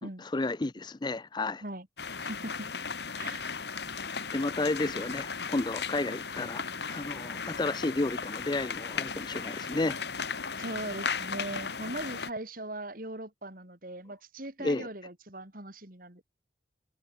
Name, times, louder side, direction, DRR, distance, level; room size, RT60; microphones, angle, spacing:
voice 1, 0.2-1.6 3.5-3.6 4.3-10.0 14.6-14.9, left 2 dB, 25° left, 0.5 m, -32 dB
sound 1, 2.0-12.3, left 5 dB, 65° left, 2.0 m, -36 dB
voice 2, 2.2-2.7 3.2-3.5 10.6-16.2, right 1 dB, 50° right, 3.6 m, -40 dB
head